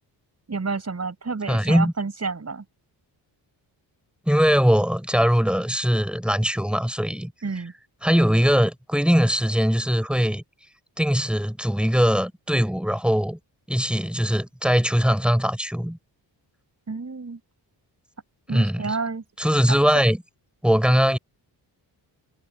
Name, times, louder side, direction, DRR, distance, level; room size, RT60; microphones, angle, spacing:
voice 1, 0.5-2.6 7.4-7.7 16.9-17.4 18.5-19.2, right 4 dB, 35° right, 5.4 m, -29 dB
voice 2, 1.5-1.9 4.3-7.3 8.0-10.4 11.0-13.4 13.7-16.0 18.5-19.0 19.4-20.2 20.6-21.2, equal, ahead, 4.8 m, -21 dB
cardioid pair, 90°, 44 cm